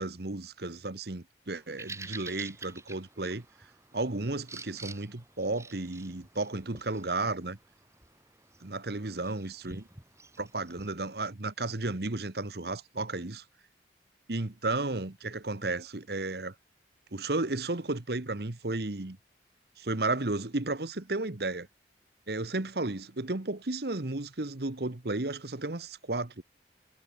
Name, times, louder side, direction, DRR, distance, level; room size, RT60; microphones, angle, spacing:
voice 1, 0.0-3.4 3.9-7.6 8.6-9.9 10.4-13.4 14.3-16.5 17.1-19.2 19.8-21.7 22.3-26.4, right 2 dB, 60° right, 1.3 m, -33 dB
Bird vocalization bird call bird song, 1.5-10.9, right 3 dB, 15° right, 6.2 m, -49 dB
head